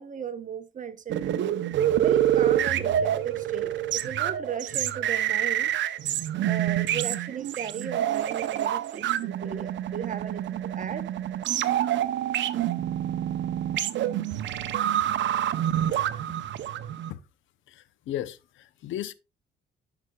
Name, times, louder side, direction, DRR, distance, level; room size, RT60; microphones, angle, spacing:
voice 1, 0.0-1.4 1.9-5.7 6.4-11.1, right 7 dB, 40° right, 0.9 m, -36 dB
sound 1, 1.1-17.1, right 11 dB, 70° right, 0.7 m, -27 dB
voice 2, 17.7-19.1, left 12 dB, 75° left, 0.7 m, -36 dB
11.0 x 6.0 x 2.3 m
cardioid pair, 90°, 20 cm